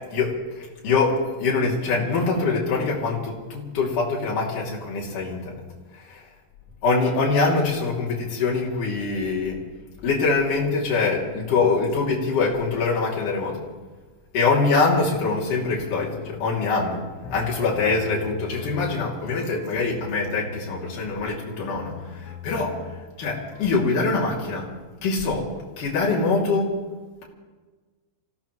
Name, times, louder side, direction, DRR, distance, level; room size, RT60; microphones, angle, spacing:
voice 1, 0.1-5.6 6.8-9.6 10.0-13.6 14.3-17.0 17.3-22.8 23.2-24.7 25.0-25.5 25.8-26.7, left 4 dB, 50° left, -4 dB, 3.8 m, -24 dB
sound 1, 15.8-23.7, left 5 dB, 90° left, 3.4 m, -41 dB
27.5 x 16.5 x 3.1 m, 1.4 s
omnidirectional pair, 5.3 m